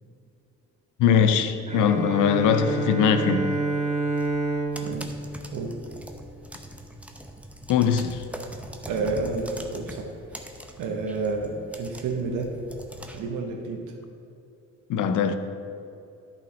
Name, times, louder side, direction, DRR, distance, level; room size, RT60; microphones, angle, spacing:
voice 1, 1.0-3.5 7.7-8.2 14.9-15.4, left 7 dB, 85° left, 0.6 m, -21 dB
Bowed string instrument, 1.7-6.4, right 2 dB, 25° right, 1.3 m, -29 dB
sound 1, 4.2-13.2, right 1 dB, 5° right, 0.7 m, -42 dB
voice 2, 8.9-10.4 10.8-12.5 13.1-14.0, right 3 dB, 90° right, 1.2 m, -30 dB
10.0 x 5.8 x 4.2 m
cardioid pair, 90°, 30 cm